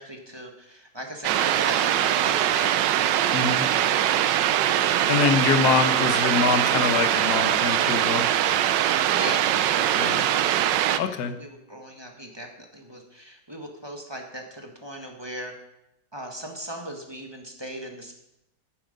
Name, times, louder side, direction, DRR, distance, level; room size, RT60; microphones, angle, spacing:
voice 1, 0.0-3.2 9.1-10.6 11.0-15.5 16.1-18.1, right 1 dB, 15° right, 2 dB, 1.5 m, -39 dB
sound 1, 1.2-11.0, right 11 dB, 85° right, 1.3 m, -22 dB
voice 2, 3.3-3.6 5.1-8.2 10.0-10.2 11.0-11.3, left 6 dB, 65° left, 9 dB, 1.5 m, -24 dB
11.5 x 9.5 x 5.3 m, 0.85 s
omnidirectional pair, 1.9 m